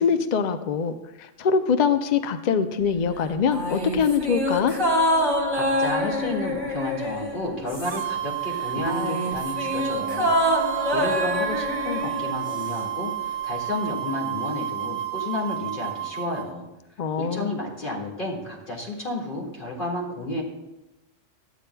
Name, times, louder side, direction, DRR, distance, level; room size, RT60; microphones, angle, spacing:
voice 1, 0.0-4.7 17.0-17.5, left 6 dB, 70° left, 9 dB, 0.4 m, -23 dB
sound 1, 3.5-8.3 8.5-12.9 13.1-13.2, equal, 20° right, 1.6 m, -26 dB
voice 2, 5.5-10.3 10.9-16.7 17.2-20.4, left 2 dB, 40° left, -3 dB, 2.2 m, -31 dB
sound 2, 7.8-16.5, right 12 dB, 55° right, 0.6 m, -31 dB
13.0 x 9.1 x 2.2 m, 0.98 s
omnidirectional pair, 1.3 m